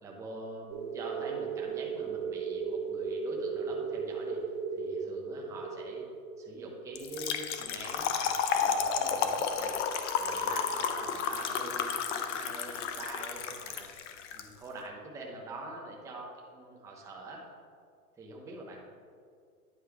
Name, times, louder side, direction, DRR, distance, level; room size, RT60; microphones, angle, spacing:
voice 1, 0.0-4.4 4.8-6.0 6.4-9.8 10.2-13.9 14.3-17.4 18.2-18.8, right 2 dB, 5° right, -2 dB, 0.5 m, -44 dB
sound 1, 0.7-9.0, right 5 dB, 55° right, 1.5 m, -37 dB
Trickle dribble / Fill (with liquid), 7.0-14.4, left 7 dB, 50° left, 0.6 m, -32 dB
9.7 x 4.5 x 3.4 m, 2.2 s
hypercardioid pair, 135°, 47 cm